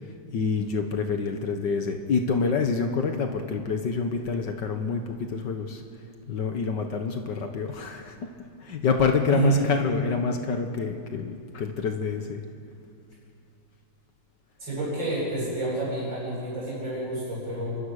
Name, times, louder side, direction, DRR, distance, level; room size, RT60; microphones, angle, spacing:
voice 1, 0.3-5.8 6.3-8.3 8.6-12.4, left 5 dB, 75° left, 5 dB, 1.9 m, -27 dB
voice 2, 9.3-9.7 14.6-17.8, right 2 dB, 85° right, -6 dB, 8.8 m, -28 dB
28.5 x 24.5 x 6.6 m, 2.5 s
omnidirectional pair, 2.0 m